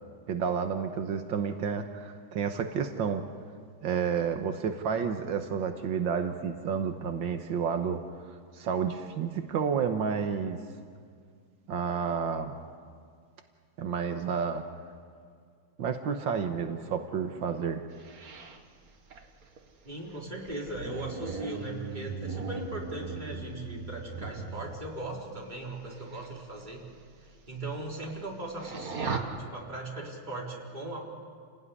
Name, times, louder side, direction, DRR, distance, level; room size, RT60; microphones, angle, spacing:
voice 1, 0.3-3.2 3.8-8.0 8.5-10.6 11.7-12.5 13.8-14.6 15.8-17.8, right 6 dB, 85° right, 6 dB, 1.9 m, -30 dB
Bear like sounds (clean), 18.0-24.8 25.9-26.3 26.6-26.7 27.2-27.3 27.6-28.3 28.5-29.2, right 5 dB, 50° right, 2.0 m, -38 dB
voice 2, 19.8-26.8 27.2-31.0, right 2 dB, 25° right, -2 dB, 4.2 m, -38 dB
29.5 x 17.5 x 9.9 m, 2.1 s
omnidirectional pair, 2.0 m